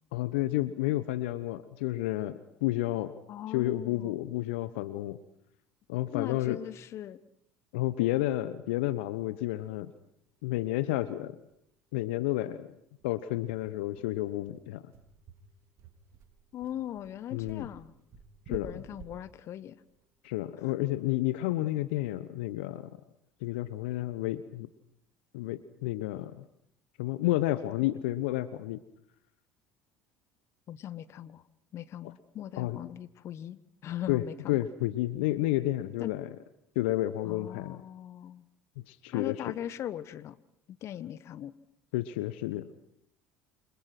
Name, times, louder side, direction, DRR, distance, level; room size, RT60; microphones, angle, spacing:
voice 1, 0.1-3.1 3.5-5.2 5.9-6.6 7.7-9.9 10.4-11.4 11.9-12.7 13.0-14.8 17.3-17.7 18.5-18.7 20.2-22.9 23.4-24.7 25.3-26.4 27.0-28.8 32.5-32.8 34.1-36.3 36.7-37.8 38.8-39.4 41.9-42.7, left 16 dB, 70° left, 14 dB, 1.1 m, -31 dB
voice 2, 3.3-4.2 6.1-7.2 16.5-17.9 18.5-19.8 20.6-20.7 30.7-31.4 31.7-34.6 36.0-36.1 37.2-38.4 39.1-40.4 40.7-41.5, left 11 dB, 50° left, 15 dB, 1.4 m, -39 dB
sound 1, 10.6-10.7 11.0-11.1 11.4-11.6 12.0-12.1 12.5-20.9, right 7 dB, 55° right, 3.8 m, -52 dB
29.0 x 26.0 x 6.0 m, 0.76 s
hypercardioid pair, 65°, 6 cm